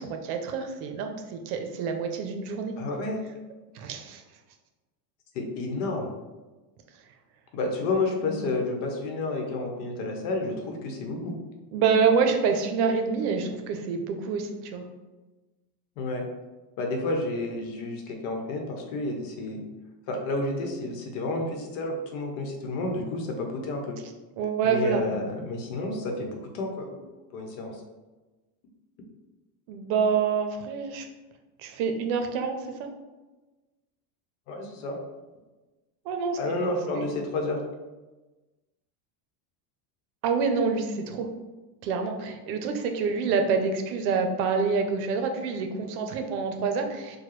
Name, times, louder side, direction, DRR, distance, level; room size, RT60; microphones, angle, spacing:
voice 1, 0.0-2.7 3.7-4.2 8.1-8.4 11.7-14.8 24.4-25.0 29.7-31.1 31.6-32.9 36.1-36.4 37.0-37.1 40.2-41.3 41.8-47.2, right 5 dB, 65° right, 5 dB, 0.7 m, -27 dB
voice 2, 2.8-3.2 5.3-6.1 7.5-11.4 16.0-16.3 16.8-19.6 20.1-24.0 24.6-27.0 27.3-27.8 34.5-35.0 36.4-37.6, left 2 dB, 70° left, 2 dB, 1.0 m, -30 dB
4.7 x 2.2 x 3.1 m, 1.2 s
cardioid pair, 150°, 49 cm